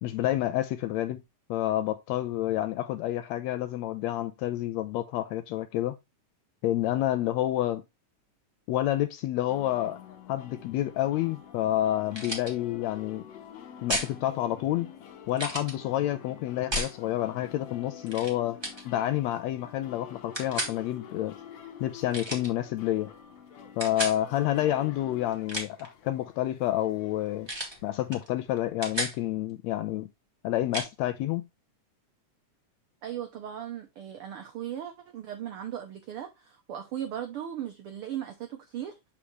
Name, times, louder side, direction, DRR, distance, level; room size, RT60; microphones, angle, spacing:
voice 1, 0.0-1.2 1.5-6.0 6.6-7.8 8.7-10.0 10.3-13.3 13.8-14.9 15.3-18.6 18.9-21.3 21.8-23.1 23.8-27.5 27.8-30.1 30.4-31.4, left 13 dB, 80° left, 1.6 m, -29 dB
sound 1, 9.5-28.1, left 8 dB, 65° left, 2.1 m, -48 dB
sound 2, 12.1-12.5 13.9-14.1 15.3-15.7 16.7-16.9 18.1-18.3 18.6-18.8 20.3-20.7 22.1-22.5 23.8-24.2 25.3-25.9 27.5-27.8 28.1-28.3 28.6-29.2 30.7-30.9, right 1 dB, 15° right, 0.9 m, -32 dB
voice 2, 33.0-39.0, right 10 dB, 90° right, 1.2 m, -37 dB
7.1 x 5.0 x 3.1 m
omnidirectional pair, 3.5 m